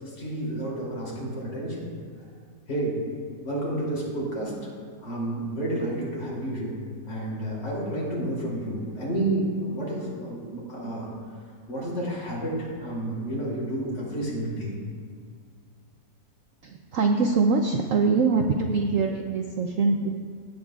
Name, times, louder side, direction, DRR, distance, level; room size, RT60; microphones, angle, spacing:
voice 1, 0.0-1.9 2.7-3.2 3.4-4.7 5.0-6.8 7.0-11.1 11.7-14.7, right 1 dB, 70° left, -5 dB, 3.7 m, -30 dB
voice 2, 16.6-20.2, right 4 dB, 75° right, 3 dB, 0.7 m, -23 dB
17.0 x 8.8 x 2.4 m, 2.1 s
omnidirectional pair, 2.0 m